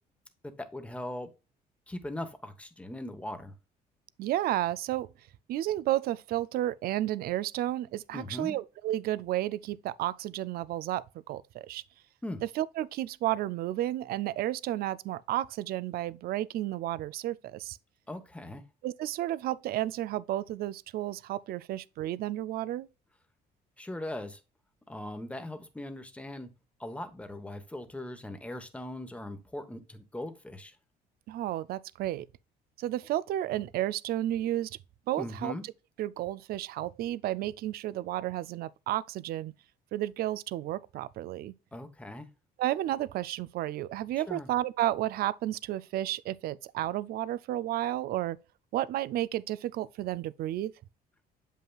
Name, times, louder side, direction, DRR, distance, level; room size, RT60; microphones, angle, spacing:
voice 1, 0.4-1.3 1.9-3.5 8.1-8.6 12.2-12.4 18.1-18.6 23.8-24.4 24.9-26.5 26.8-30.8 35.2-35.6 41.7-42.3 44.2-44.5, left 1 dB, 5° left, 1.0 m, -40 dB
voice 2, 4.2-5.1 5.5-11.8 12.6-17.8 18.8-22.9 31.3-32.3 32.8-34.8 35.1-35.5 36.0-39.5 39.9-41.5 42.6-48.4 48.7-50.7, right 14 dB, 65° right, 0.4 m, -32 dB
7.5 x 5.5 x 2.3 m
cardioid pair, 110°, 17 cm